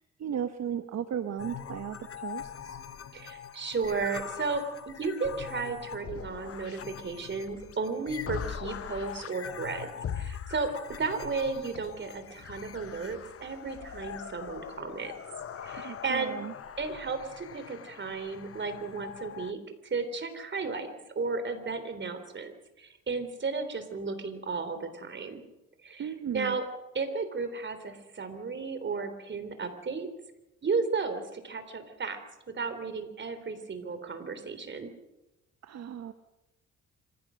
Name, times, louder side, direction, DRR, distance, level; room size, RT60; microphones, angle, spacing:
voice 1, 0.0-2.8 15.7-16.5 26.0-26.6 35.6-36.1, right 9 dB, 60° right, 8 dB, 1.3 m, -36 dB
sound 1, 1.4-19.5, left 8 dB, 50° left, 1.2 m, -42 dB
voice 2, 3.1-10.7 11.0-15.1 15.6-16.3 16.8-19.6 19.9-22.5 22.8-25.4 25.8-26.6 26.9-30.1 30.6-32.2 32.5-34.9, right 4 dB, 40° right, 9 dB, 3.7 m, -34 dB
26.0 x 16.0 x 6.4 m, 0.97 s
cardioid pair, 90°, 30 cm